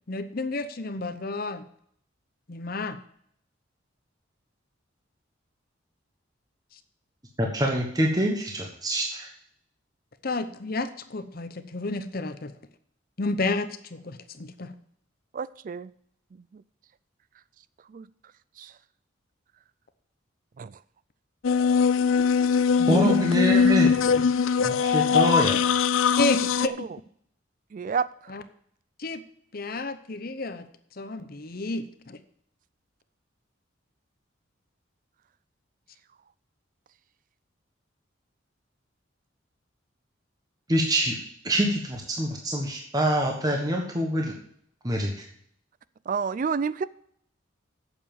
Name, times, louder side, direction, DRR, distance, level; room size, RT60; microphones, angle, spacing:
voice 1, 0.1-1.6 2.5-3.0 10.2-12.5 13.2-14.7 22.8-23.1 26.2-26.9 28.3-28.4 29.0-29.2 29.5-30.6 31.0-32.2, left 2 dB, 50° left, 11 dB, 0.8 m, -30 dB
voice 2, 7.4-9.3 22.9-24.2 24.6-25.7 40.7-41.2 41.4-44.3 44.8-45.3, equal, 20° right, 1 dB, 1.3 m, -25 dB
voice 3, 15.3-15.9 16.5-16.6 17.9-18.1 18.6-18.7 20.6-20.8 26.6-26.9 27.7-28.1 46.1-46.8, right 5 dB, 40° right, 18 dB, 0.3 m, -29 dB
sound 1, 21.4-26.7, left 6 dB, 85° left, 0.5 m, -21 dB
8.7 x 7.0 x 7.1 m, 0.66 s
head